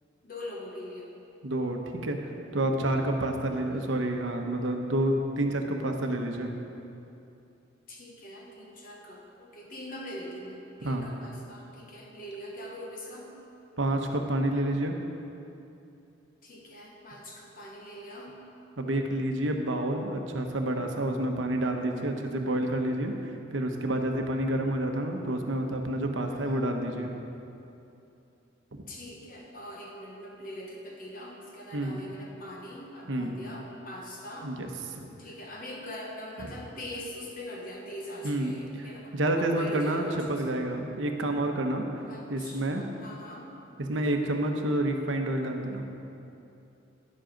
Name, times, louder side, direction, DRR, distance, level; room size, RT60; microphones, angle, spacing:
voice 1, 0.2-1.1 3.6-4.0 7.9-13.4 16.4-18.5 26.2-26.7 28.9-34.5 35.2-40.6 42.0-43.6, equal, 45° left, -1 dB, 1.1 m, -42 dB
voice 2, 1.4-2.2 2.5-6.5 10.8-11.1 13.8-15.0 18.8-27.1 28.7-28.8 31.7-32.0 33.1-33.3 34.4-34.7 35.0-35.1 36.4-36.5 38.2-38.5 39.1-41.8 42.3-42.8 43.9-45.8, right 1 dB, 75° right, 3 dB, 1.0 m, -29 dB
11.0 x 7.8 x 5.1 m, 2.8 s
head